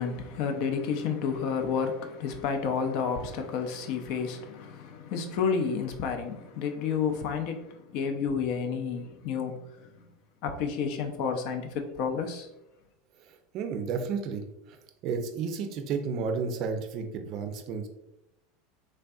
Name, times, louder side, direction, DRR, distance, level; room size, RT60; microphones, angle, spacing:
voice 1, 0.0-10.0 10.4-12.5, left 6 dB, 60° left, 0.4 m, -31 dB
voice 2, 13.3-14.8 15.0-17.9, right 5 dB, 55° right, 0.4 m, -32 dB
3.3 x 2.5 x 2.3 m
hypercardioid pair, 85°, 0 cm